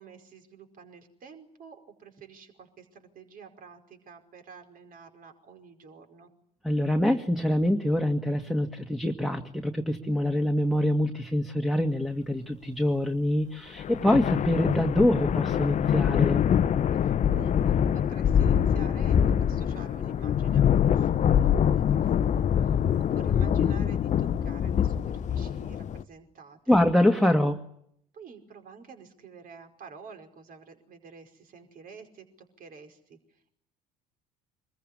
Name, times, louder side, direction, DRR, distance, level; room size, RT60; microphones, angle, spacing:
voice 1, 0.0-6.3 17.0-22.8 23.1-26.8 28.1-33.5, right 6 dB, 45° right, 5 dB, 5.2 m, -49 dB
voice 2, 6.6-16.4 26.7-27.6, left 1 dB, ahead, 6 dB, 2.2 m, -25 dB
sound 1, 13.8-26.0, left 9 dB, 35° left, 1.0 m, -24 dB
26.0 x 22.0 x 10.0 m, 0.72 s
figure-of-eight pair, 60°, 20 cm